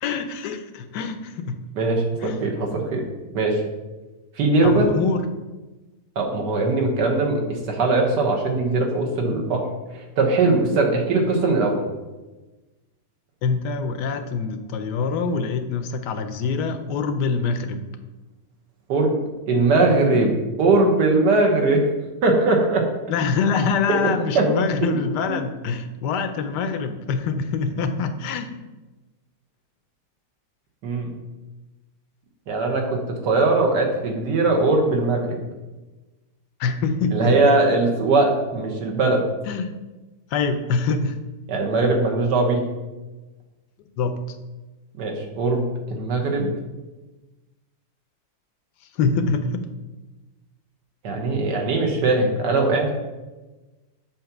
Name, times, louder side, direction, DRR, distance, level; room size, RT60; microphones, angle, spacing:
voice 1, 0.0-1.6 2.2-2.5 4.6-5.3 13.4-17.8 23.1-28.5 36.6-37.6 39.5-39.7 40.3-41.2 44.0-44.2 49.0-49.5, left 5 dB, 90° left, 8 dB, 1.3 m, -25 dB
voice 2, 1.8-3.0 3.3-3.6 4.4-4.9 6.2-9.7 9.9-11.9 18.9-19.1 19.5-20.3 20.6-21.9 22.2-22.9 24.0-24.5 24.8-24.9 30.8-31.1 32.5-35.4 37.1-39.2 41.5-42.6 45.0-46.5 51.0-52.9, right 3 dB, 90° right, 1 dB, 1.7 m, -20 dB
7.3 x 2.8 x 5.9 m, 1.1 s
omnidirectional pair, 1.8 m